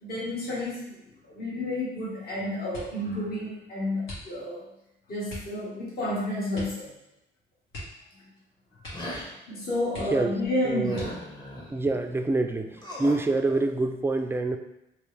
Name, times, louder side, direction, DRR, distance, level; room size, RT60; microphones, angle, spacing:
voice 1, 0.0-1.0 1.3-4.6 5.1-6.9 9.5-11.1, left 1 dB, 50° left, -6 dB, 1.4 m, -30 dB
sound 1, 2.7-3.1 4.0-4.7 5.3-5.6 6.5-6.9 7.1-7.2 7.7-8.4 8.8-9.2 9.5-9.6 9.9-10.4 10.9-11.5 12.2-12.8 13.2-13.6, left 1 dB, 80° left, 1.5 m, -42 dB
sound 2, 8.9-9.3 10.8-11.7 12.8-13.3, equal, 20° left, 1.0 m, -37 dB
voice 2, 10.6-11.1 11.7-14.6, right 2 dB, 10° right, 6 dB, 0.3 m, -26 dB
3.3 x 3.0 x 3.2 m, 0.89 s
cardioid pair, 90°, 20 cm